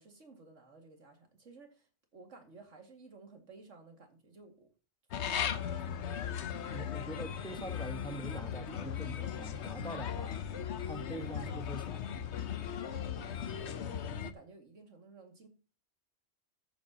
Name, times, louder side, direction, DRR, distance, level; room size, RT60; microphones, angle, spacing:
voice 1, 0.0-4.7 5.2-6.8 13.4-15.5, right 3 dB, 80° right, 2.6 m, -54 dB
sound 1, 5.1-14.3, left 8 dB, 65° left, 1.1 m, -37 dB
voice 2, 6.7-10.4 10.8-12.1, right 1 dB, 5° left, 1.3 m, -44 dB
13.5 x 8.7 x 2.9 m
omnidirectional pair, 1.3 m